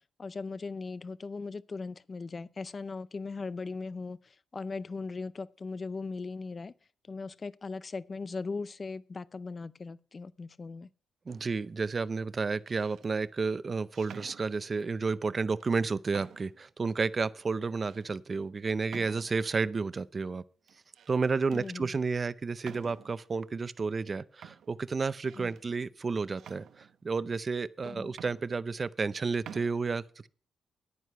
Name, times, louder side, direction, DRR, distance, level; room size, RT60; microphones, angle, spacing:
voice 1, 0.2-6.7 7.1-10.9 21.5-21.9 25.4-25.5 27.8-28.1, left 4 dB, 30° left, 0.5 m, -39 dB
voice 2, 11.3-20.4 21.1-30.3, right 4 dB, 30° right, 0.5 m, -31 dB
sound 1, 11.3-11.7 12.5-13.1 13.9-14.9 15.6-15.7 16.1-16.7 17.2-17.3 17.9-18.1 18.9-19.6 20.7-21.2 21.5-21.8 22.6-23.2 24.0-24.1 24.4-25.7 26.4-27.2 27.8-27.9 28.1-29.1 29.3-29.7, right 8 dB, 70° right, 0.8 m, -50 dB
10.0 x 9.4 x 5.6 m
cardioid pair, 120°, 0 cm